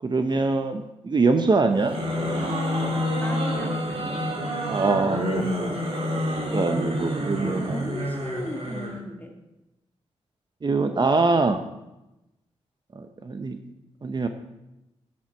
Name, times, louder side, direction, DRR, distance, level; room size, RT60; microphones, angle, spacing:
voice 1, 0.0-2.0 4.7-5.7 6.5-7.8 10.6-11.6 12.9-13.6 14.0-14.3, right 3 dB, 40° right, 7 dB, 0.8 m, -23 dB
sound 1, 1.7-9.0, equal, 55° right, 2.6 m, -28 dB
voice 2, 3.2-4.1 7.4-9.4, left 1 dB, 15° left, 2 dB, 1.9 m, -36 dB
10.0 x 7.6 x 4.5 m, 0.94 s
cardioid pair, 60°, 12 cm